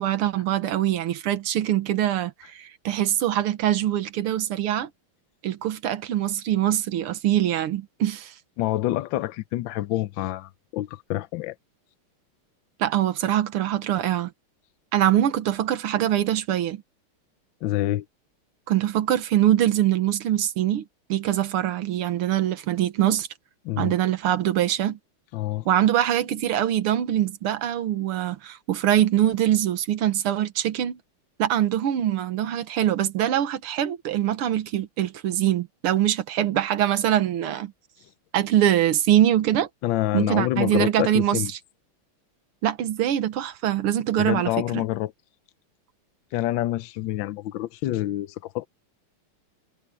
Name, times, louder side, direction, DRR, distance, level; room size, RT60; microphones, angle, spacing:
voice 1, 0.0-4.9 5.4-8.3 12.8-14.3 14.9-16.8 18.7-20.8 21.1-23.3 23.8-25.0 25.7-31.0 31.4-37.7 38.3-39.7 40.1-41.4 42.6-44.5, right 12 dB, 80° right, 2.0 m, -23 dB
voice 2, 8.6-11.6 17.6-18.0 23.6-23.9 25.3-25.7 39.8-41.5 44.2-45.1 46.3-48.7, left 15 dB, 70° left, 1.2 m, -27 dB
omnidirectional pair, 2.4 m